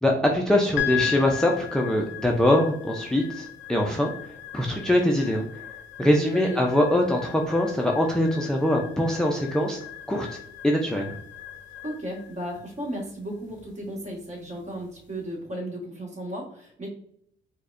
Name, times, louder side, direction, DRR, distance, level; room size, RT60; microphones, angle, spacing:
voice 1, 0.0-4.1 4.5-5.6 6.0-9.8 10.1-10.4 10.6-11.1, left 1 dB, 5° left, 1 dB, 0.4 m, -23 dB
sound 1, 0.8-15.1, left 11 dB, 70° left, 0.5 m, -38 dB
voice 2, 6.0-6.6 11.8-16.9, right 1 dB, 35° right, -2 dB, 1.3 m, -35 dB
4.6 x 2.2 x 2.5 m, 0.68 s
cardioid pair, 90°, 20 cm